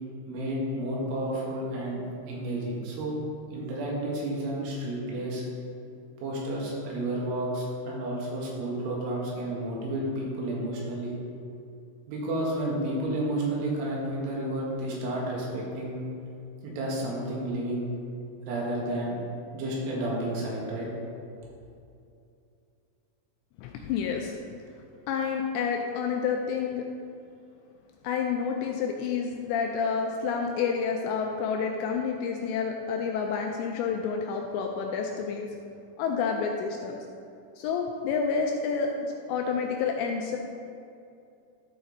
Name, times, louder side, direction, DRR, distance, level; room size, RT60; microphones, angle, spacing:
voice 1, 0.3-2.0 2.3-3.2 3.5-5.4 6.2-11.1 12.1-16.0 16.6-17.9 18.4-19.2 19.5-20.9, right 1 dB, 80° right, -4 dB, 4.1 m, -31 dB
voice 2, 23.6-24.4 25.1-26.8 28.0-35.5 36.0-37.0 37.6-38.9 39.3-40.4, left 6 dB, 85° left, 2 dB, 2.6 m, -29 dB
12.5 x 5.0 x 4.0 m, 2.6 s
omnidirectional pair, 5.5 m